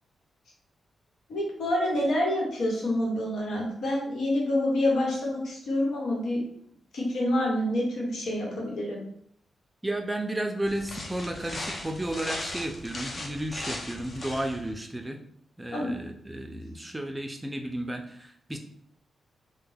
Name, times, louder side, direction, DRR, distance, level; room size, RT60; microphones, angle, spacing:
voice 1, 1.3-6.4 6.9-9.0 15.7-15.9, left 1 dB, 80° left, -2 dB, 1.1 m, -27 dB
voice 2, 9.8-15.2 15.6-18.6, right 1 dB, 15° right, 4 dB, 0.5 m, -33 dB
sound 1, 10.6-14.7, left 2 dB, 45° left, 0.7 m, -38 dB
3.2 x 2.1 x 3.3 m, 0.66 s
cardioid pair, 65°, 0 cm